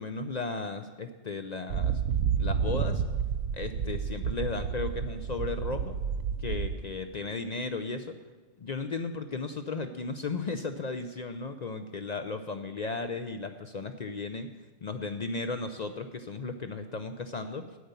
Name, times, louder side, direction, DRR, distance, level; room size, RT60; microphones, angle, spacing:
voice 1, 0.0-2.0 2.4-3.0 3.5-6.0 6.4-8.2 8.6-14.5 14.8-17.7, left 3 dB, 55° left, 8 dB, 0.4 m, -35 dB
sound 1, 1.7-6.7, right 7 dB, 70° right, 0.9 m, -30 dB
9.4 x 9.1 x 6.8 m, 1.3 s
omnidirectional pair, 1.4 m